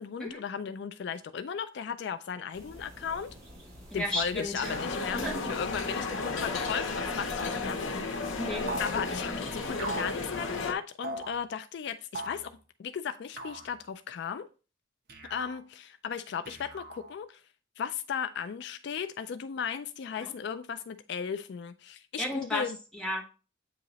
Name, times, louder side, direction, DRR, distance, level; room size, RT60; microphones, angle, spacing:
voice 1, 0.0-3.4 3.9-8.0 8.8-14.5 15.3-17.4 17.8-22.8, left 7 dB, 60° left, 0.3 m, -36 dB
sound 1, 2.5-10.7, equal, 35° right, 2.7 m, -49 dB
voice 2, 3.9-4.7 5.2-5.4 6.0-6.1 8.4-8.7 20.2-20.3 22.2-23.3, left 1 dB, 5° left, 1.2 m, -34 dB
sound 2, 4.6-10.7, left 3 dB, 85° left, 0.8 m, -33 dB
sound 3, 8.7-9.0 9.8-10.2 11.0-11.3 12.1-12.5 13.4-13.7 15.1-15.6 16.5-17.2, right 2 dB, 55° right, 0.8 m, -38 dB
8.4 x 2.9 x 4.0 m
head